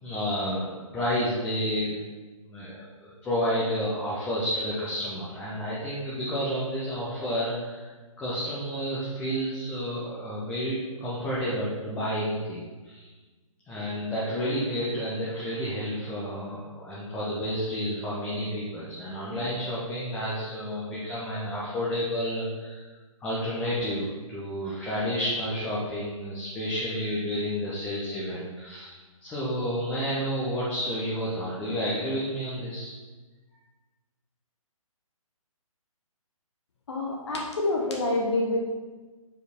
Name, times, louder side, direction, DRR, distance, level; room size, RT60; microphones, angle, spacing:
voice 1, 0.0-2.0 2.5-7.9 8.2-13.1 13.7-22.8 23.2-32.9, equal, 5° left, -8 dB, 0.8 m, -30 dB
voice 2, 36.9-38.6, left 2 dB, 50° left, -1 dB, 1.0 m, -27 dB
4.9 x 4.7 x 4.4 m, 1.3 s
figure-of-eight pair, 135°, 18 cm